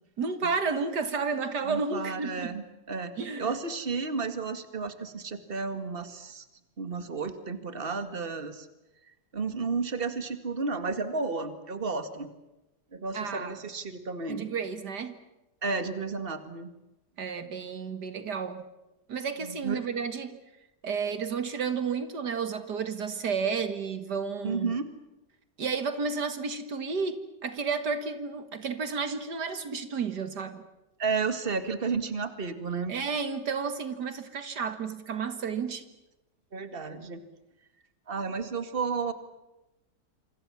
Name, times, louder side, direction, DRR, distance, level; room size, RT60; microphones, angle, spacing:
voice 1, 0.2-2.6 3.2-3.5 13.1-13.6 14.3-15.2 17.2-18.6 19.1-20.4 20.8-24.7 25.6-30.6 32.9-35.8, right 5 dB, 70° right, 2.3 m, -32 dB
voice 2, 1.6-6.5 6.8-8.7 9.3-12.3 12.9-14.5 15.6-16.7 19.4-19.8 24.4-24.9 31.0-32.9 36.5-37.2 38.1-39.1, right 4 dB, 30° right, 2.2 m, -32 dB
28.0 x 25.5 x 7.3 m
omnidirectional pair, 1.8 m